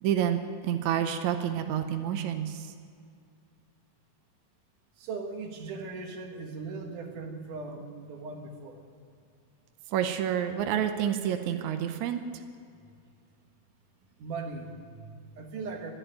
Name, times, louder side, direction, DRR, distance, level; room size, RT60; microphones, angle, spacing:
voice 1, 0.0-2.7 9.9-12.2, right 10 dB, 80° right, 7 dB, 1.7 m, -29 dB
voice 2, 5.0-8.8 14.2-15.9, right 4 dB, 65° right, 3 dB, 2.7 m, -39 dB
11.5 x 11.5 x 8.9 m, 2.3 s
omnidirectional pair, 4.2 m